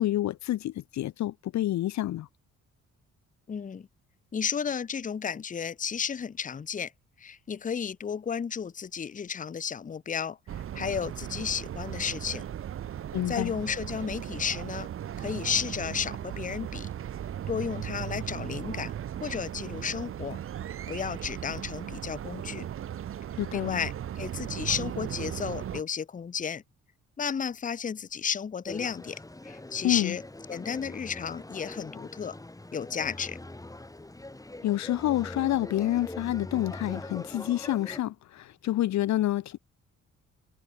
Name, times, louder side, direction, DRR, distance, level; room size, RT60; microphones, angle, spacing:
voice 1, 0.0-2.3 13.1-13.5 23.4-23.8 29.8-30.2 34.6-39.6, left 14 dB, 65° left, 0.7 m, -28 dB
voice 2, 3.5-3.9 4.3-6.9 7.2-12.4 13.3-14.9 15.2-16.9 17.5-18.9 19.2-20.4 20.9-22.7 23.5-26.6 27.2-30.2 30.5-32.4 32.7-33.4, left 7 dB, 25° left, 0.7 m, -33 dB
sound 1, 10.5-25.8, right 10 dB, 45° right, 0.7 m, -37 dB
sound 2, 28.6-38.0, left 2 dB, 10° left, 4.9 m, -42 dB
cardioid pair, 90°, 30 cm